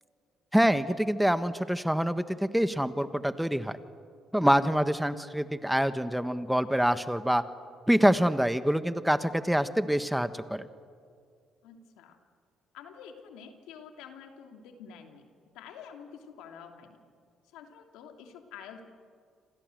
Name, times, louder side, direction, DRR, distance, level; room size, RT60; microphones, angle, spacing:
voice 1, 0.5-3.8 4.3-7.4 7.9-10.7, equal, 5° right, 11 dB, 1.4 m, -26 dB
voice 2, 11.6-12.2 12.7-15.3 15.5-17.0 17.5-18.8, left 7 dB, 80° left, 4 dB, 2.9 m, -48 dB
28.5 x 26.5 x 7.8 m, 2.2 s
supercardioid pair, 60°, 0 cm